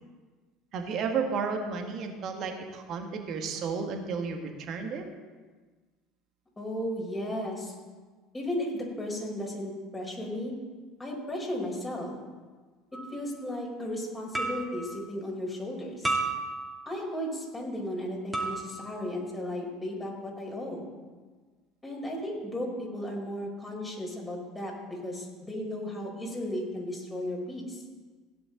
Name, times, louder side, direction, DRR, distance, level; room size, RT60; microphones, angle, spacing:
voice 1, 0.7-5.0, right 5 dB, 45° right, 3 dB, 2.1 m, -32 dB
voice 2, 6.6-7.7 8.3-10.5 11.0-12.1 12.9-16.1 16.8-20.9 21.8-27.8, left 1 dB, 15° left, -1 dB, 4.8 m, -35 dB
sound 1, 12.9-13.2 14.4-14.9 16.0-16.9 18.3-19.0, right 3 dB, 5° right, 2.8 m, -32 dB
17.0 x 10.5 x 4.0 m, 1.4 s
figure-of-eight pair, 65°, 0 cm